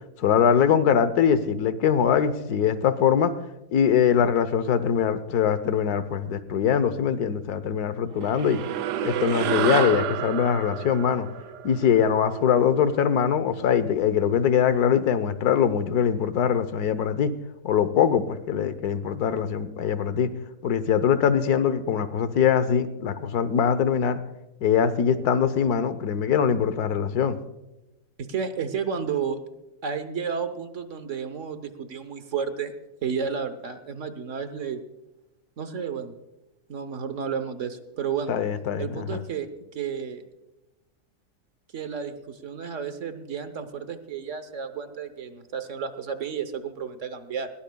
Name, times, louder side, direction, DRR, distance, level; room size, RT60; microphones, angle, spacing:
voice 1, 0.2-3.3 3.7-8.6 9.0-11.3 11.6-17.3 17.6-20.3 20.6-24.2 24.6-27.4 38.3-39.2, left 8 dB, 70° left, 13 dB, 1.4 m, -22 dB
sound 1, 8.2-12.9, right 10 dB, 85° right, 1.3 m, -29 dB
voice 2, 28.2-29.4 29.8-32.7 33.0-34.8 35.6-36.1 36.7-38.3 38.8-40.2 41.7-47.5, right 6 dB, 55° right, 10 dB, 1.2 m, -32 dB
20.5 x 17.5 x 2.3 m, 0.98 s
omnidirectional pair, 1.7 m